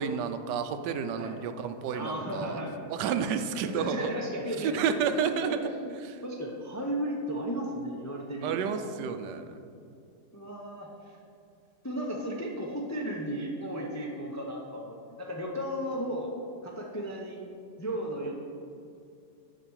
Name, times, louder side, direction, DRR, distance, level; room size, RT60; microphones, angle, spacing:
voice 1, 0.0-2.6 2.9-4.1 4.6-5.7 6.0-6.2 8.4-9.6, right 7 dB, 85° right, 9 dB, 1.2 m, -31 dB
voice 2, 1.9-2.8 3.7-4.8 5.4-5.9 6.2-8.8 10.3-11.2 11.8-16.3 16.6-17.4 17.8-18.3, equal, 25° left, -1 dB, 0.3 m, -34 dB
6.8 x 5.9 x 6.2 m, 2.5 s
omnidirectional pair, 1.8 m